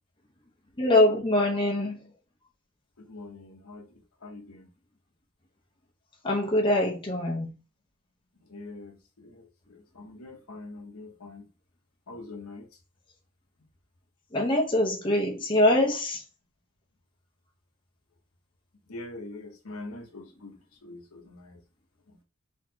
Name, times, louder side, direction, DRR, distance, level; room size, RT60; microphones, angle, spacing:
voice 1, 0.8-2.1 6.2-7.5 14.3-16.2, left 1 dB, 25° left, 0.8 m, -23 dB
voice 2, 3.0-4.7 8.4-11.5 12.1-12.7 18.9-21.6 22.1-22.2, left 2 dB, 85° left, 0.9 m, -44 dB
3.9 x 3.0 x 2.8 m
head